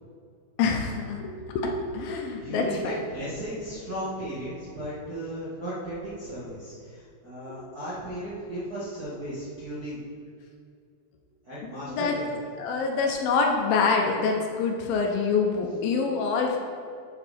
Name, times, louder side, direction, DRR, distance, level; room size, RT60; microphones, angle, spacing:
voice 1, 0.6-2.9 11.8-12.2 12.6-16.6, left 4 dB, 75° left, 2 dB, 2.5 m, -26 dB
voice 2, 2.4-10.0 11.4-12.4, right 1 dB, 40° right, -11 dB, 1.3 m, -35 dB
9.7 x 7.3 x 4.2 m, 2.3 s
omnidirectional pair, 4.5 m